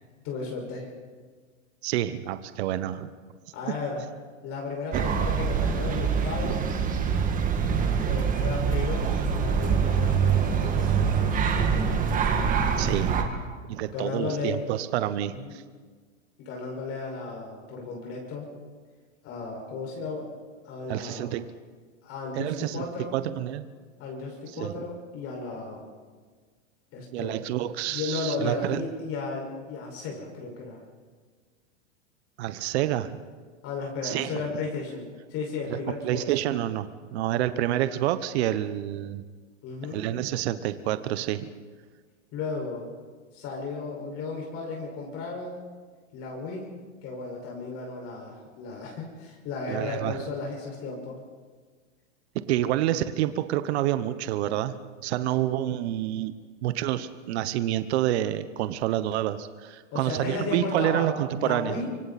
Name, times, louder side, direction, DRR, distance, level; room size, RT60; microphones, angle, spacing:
voice 1, 0.2-0.9 3.5-4.0 4.4-6.7 8.0-12.0 13.9-14.7 15.3-15.5 16.4-18.5 19.2-20.3 20.6-21.3 22.0-23.1 24.0-25.8 26.9-27.4 27.9-30.8 33.6-35.0 35.3-36.2 39.6-40.0 42.3-42.9 43.3-45.6 46.1-46.7 47.0-51.2 59.9-61.1 61.4-61.9, left 4 dB, 35° left, 0 dB, 5.5 m, -34 dB
voice 2, 1.8-3.1 4.9-5.1 6.4-6.5 12.8-13.3 13.7-15.6 20.9-21.5 22.3-23.7 24.5-24.8 27.1-28.9 32.4-33.2 34.0-34.4 35.7-39.2 39.9-41.5 49.7-50.2 52.3-56.3 56.6-61.8, right 13 dB, 55° right, 12 dB, 1.2 m, -28 dB
sound 1, 4.9-13.2, right 6 dB, 20° right, 2.0 m, -25 dB
25.5 x 24.5 x 4.3 m, 1.5 s
hypercardioid pair, 135°, 38 cm